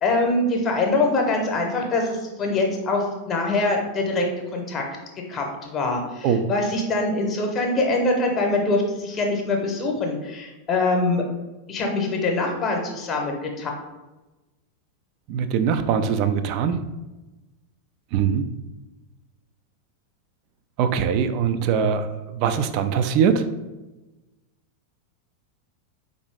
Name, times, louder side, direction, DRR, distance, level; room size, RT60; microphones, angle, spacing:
voice 1, 0.0-4.2 4.5-4.8 5.3-11.2 11.7-13.7, left 2 dB, 30° left, 1 dB, 0.8 m, -24 dB
voice 2, 15.3-16.8 18.1-18.5 20.8-23.5, right 7 dB, 45° right, 10 dB, 0.3 m, -22 dB
4.2 x 2.6 x 3.4 m, 1.1 s
figure-of-eight pair, 90°, 0 cm